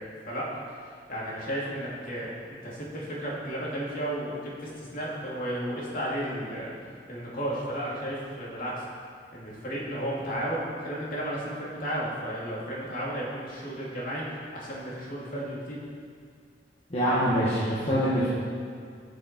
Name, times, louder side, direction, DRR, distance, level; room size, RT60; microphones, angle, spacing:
voice 1, 0.0-6.8 7.1-8.8 9.3-14.2 14.5-15.8, right 1 dB, 55° left, -6 dB, 2.8 m, -33 dB
voice 2, 16.9-18.3, equal, 35° left, -9 dB, 1.8 m, -24 dB
16.5 x 6.6 x 4.5 m, 2.2 s
head